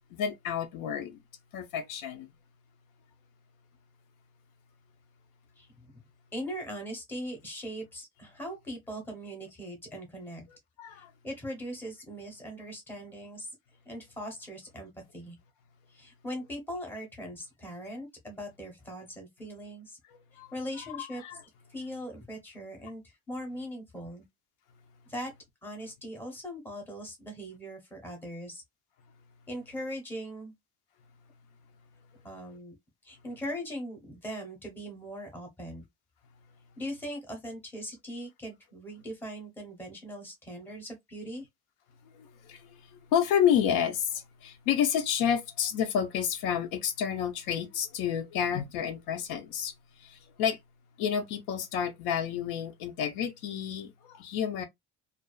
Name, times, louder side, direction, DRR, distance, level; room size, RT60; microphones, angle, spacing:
voice 1, 0.1-1.2 1.5-2.3 10.8-11.1 20.4-20.5 20.8-21.4 42.1-49.7 50.0-50.6 51.0-54.7, left 8 dB, 75° left, 0.6 m, -30 dB
voice 2, 6.3-10.5 10.9-13.5 13.9-15.4 15.9-20.0 20.5-21.2 21.7-24.3 25.1-25.3 25.6-28.6 29.5-30.5 32.2-32.7 33.0-35.8 36.8-41.5, equal, 5° left, 0.7 m, -40 dB
2.4 x 2.3 x 2.2 m
cardioid pair, 175°, 30 cm